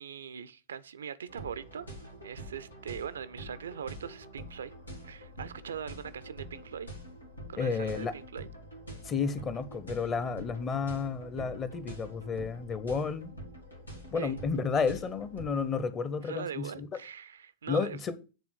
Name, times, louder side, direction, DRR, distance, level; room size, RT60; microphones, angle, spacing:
voice 1, 0.0-4.7 5.1-6.9 7.5-8.5 14.1-14.3 16.2-18.0, right 8 dB, 65° right, 0.4 m, -41 dB
sound 1, 1.3-15.7, right 1 dB, 85° left, 1.8 m, -46 dB
voice 2, 7.6-8.1 9.0-13.3 14.1-16.9 17.7-18.1, left 5 dB, 25° left, 0.8 m, -31 dB
8.3 x 3.6 x 6.4 m
figure-of-eight pair, 90°, 0 cm